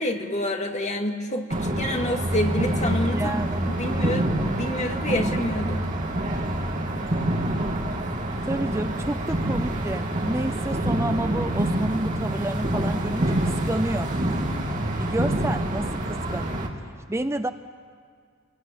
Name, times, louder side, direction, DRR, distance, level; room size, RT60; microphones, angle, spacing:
voice 1, 0.0-1.5 1.8-3.4 3.7-5.8, left 1 dB, 35° left, 3 dB, 2.2 m, -28 dB
sound 1, 1.5-16.7, right 1 dB, 40° right, 3.0 m, -26 dB
voice 2, 3.1-3.7 8.5-14.1 14.9-16.6 17.1-17.5, right 1 dB, 15° right, 9 dB, 0.6 m, -30 dB
29.0 x 22.0 x 9.2 m, 2.1 s
head